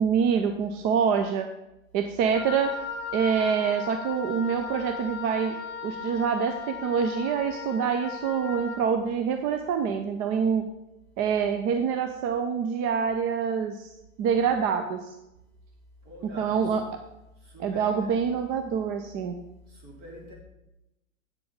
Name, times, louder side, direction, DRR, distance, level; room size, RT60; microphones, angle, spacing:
voice 1, 0.0-1.5 1.9-2.7 3.1-5.5 5.8-10.6 11.2-13.9 14.2-15.0 16.4-16.8 17.6-19.4, right 6 dB, 25° right, 7 dB, 0.5 m, -26 dB
Wind instrument woodwind instrument, 2.3-8.8, left 5 dB, 30° left, 1.5 m, -37 dB
voice 2, 16.0-16.7 17.4-18.0 19.7-20.3, equal, 40° right, -2 dB, 4.0 m, -45 dB
8.3 x 6.9 x 5.0 m, 0.91 s
figure-of-eight pair, 105°, 40 cm